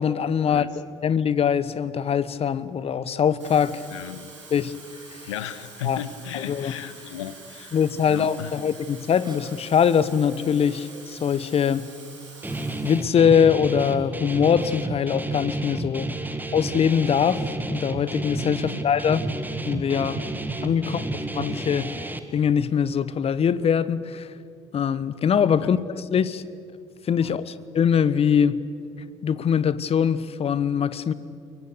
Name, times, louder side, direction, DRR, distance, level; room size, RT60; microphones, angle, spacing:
voice 1, 0.0-3.9 4.5-4.7 5.1-5.3 5.8-6.0 6.3-6.7 7.7-11.9 12.8-16.2 16.5-19.2 19.7-20.2 20.6-24.3 24.7-26.4 27.0-28.6 29.2-31.1, left 7 dB, 40° left, 1.1 m, -23 dB
Water tap faucet / Fill (with liquid), 3.2-13.2 13.5-13.8, right 4 dB, 85° right, 4.1 m, -46 dB
voice 2, 3.9-4.3 5.3-7.8 8.1-8.6 18.5-18.9 20.8-21.1 25.6-25.8 27.2-27.4, left 10 dB, 75° left, 1.1 m, -36 dB
Cough, 9.2-9.6 10.7-11.1 12.5-12.8 14.6-14.9, right 3 dB, 30° right, 6.1 m, -50 dB
Guitar, 12.4-22.2, right 2 dB, 10° right, 2.2 m, -31 dB
29.5 x 22.5 x 6.9 m
figure-of-eight pair, 55°, 15 cm